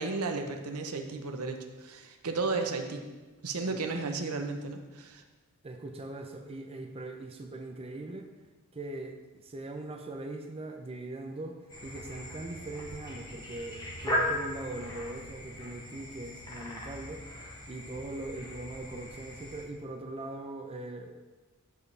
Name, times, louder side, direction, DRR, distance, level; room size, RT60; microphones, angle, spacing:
voice 1, 0.0-3.1 3.4-5.2, right 3 dB, 75° right, 5 dB, 0.8 m, -34 dB
voice 2, 5.6-8.3 8.7-17.3 17.7-21.2, right 2 dB, 25° right, 4 dB, 0.6 m, -41 dB
sound 1, 11.7-19.6, left 1 dB, 20° left, 1.5 m, -38 dB
13.0 x 4.7 x 3.3 m, 1.2 s
head